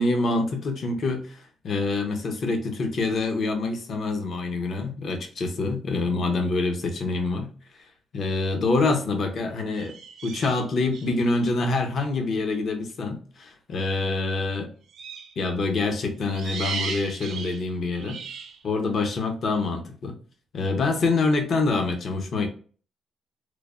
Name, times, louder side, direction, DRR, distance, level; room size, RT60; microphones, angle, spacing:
voice 1, 0.0-7.5 8.1-10.0 10.2-14.7 15.4-18.2 18.6-20.1 20.5-22.5, left 3 dB, 55° left, 0.6 m, -26 dB
sound 1, 8.3-8.5 9.7-11.2 14.9-15.4 16.2-18.6, right 5 dB, 75° right, 0.6 m, -36 dB
3.1 x 2.0 x 2.4 m
cardioid pair, 90°, 0 cm